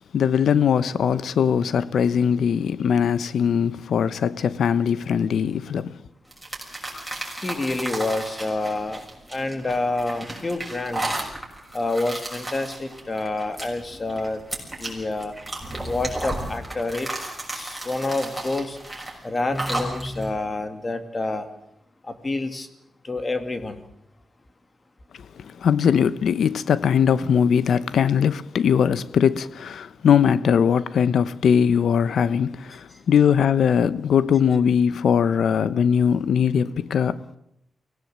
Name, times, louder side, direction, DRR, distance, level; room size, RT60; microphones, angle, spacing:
voice 1, 0.1-6.0 25.4-37.4, left 7 dB, 85° left, 0.9 m, -20 dB
sound 1, 6.3-20.3, right 1 dB, 5° right, 6.5 m, -33 dB
voice 2, 7.4-11.0 11.7-14.4 14.8-15.4 15.8-17.1 17.5-18.8 19.2-21.5 22.0-22.7 23.0-23.8, left 2 dB, 30° left, 2.3 m, -28 dB
24.0 x 18.0 x 7.6 m
wide cardioid pair, 105°, 0 cm